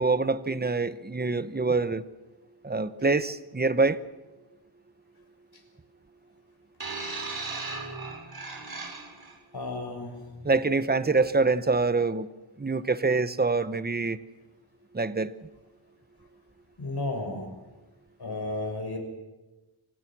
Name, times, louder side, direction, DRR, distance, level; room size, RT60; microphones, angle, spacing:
voice 1, 0.0-2.0 2.6-4.0 10.4-12.3 12.6-14.2 14.9-15.3, right 3 dB, 20° right, 13 dB, 1.0 m, -25 dB
sound 1, 6.8-9.3 10.3-10.4, right 3 dB, 50° right, 6.0 m, -36 dB
voice 2, 9.5-10.2 16.8-17.5 18.2-19.0, left 2 dB, 55° left, 4 dB, 6.5 m, -33 dB
27.5 x 24.5 x 6.2 m, 1.1 s
wide cardioid pair, 105°, 47 cm